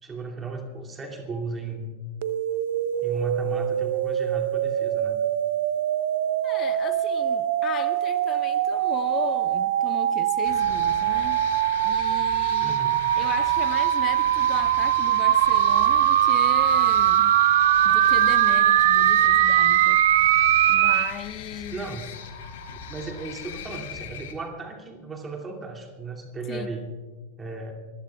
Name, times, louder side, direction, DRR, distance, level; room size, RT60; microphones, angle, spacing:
voice 1, 0.0-1.9 3.0-5.2 12.6-13.1 21.5-22.1 22.9-26.9 27.4-27.7, right 3 dB, 15° right, 2.6 m, -35 dB
sound 1, 2.2-21.1, right 12 dB, 55° right, 0.6 m, -22 dB
voice 2, 6.4-11.5 11.8-12.8 13.2-17.4 17.8-20.3 20.7-21.9 26.5-26.7, left 10 dB, 30° left, 0.7 m, -36 dB
sound 2, 10.4-24.3, left 7 dB, 55° left, 2.1 m, -39 dB
26.5 x 21.0 x 2.4 m
figure-of-eight pair, 90°, 0 cm